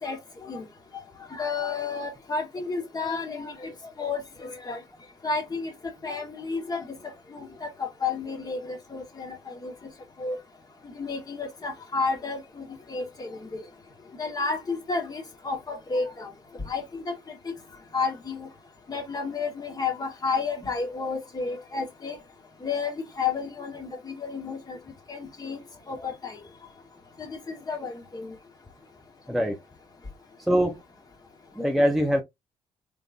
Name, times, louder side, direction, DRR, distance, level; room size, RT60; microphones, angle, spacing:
voice 1, 1.3-3.7 4.0-4.8 5.2-5.7 6.0-6.9 7.3-9.7 10.2-10.4 10.8-13.6 14.2-16.3 16.7-17.1 17.4-17.5 17.9-18.5 18.9-22.2 22.6-24.8 25.1-25.6 25.9-26.4 27.2-28.3, left 4 dB, 35° left, 2.1 m, -31 dB
voice 2, 29.3-29.6 30.5-30.8 31.6-32.2, equal, ahead, 0.9 m, -23 dB
3.6 x 3.5 x 2.5 m
cardioid pair, 75°, 11 cm